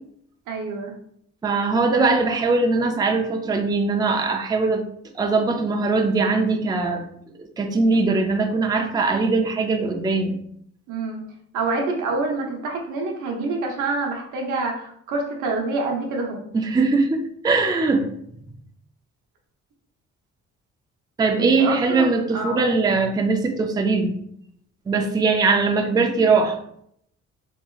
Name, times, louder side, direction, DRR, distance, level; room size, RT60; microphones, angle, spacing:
voice 1, 0.5-0.9 10.9-11.2 11.5-16.4 21.4-22.7, right 3 dB, 85° right, 1 dB, 0.8 m, -27 dB
voice 2, 1.4-4.8 5.1-7.0 7.4-10.4 16.5-18.1 21.2-24.2 24.9-26.6, right 3 dB, 15° right, 4 dB, 0.4 m, -21 dB
3.6 x 3.0 x 2.3 m, 0.70 s
cardioid pair, 90°, 30 cm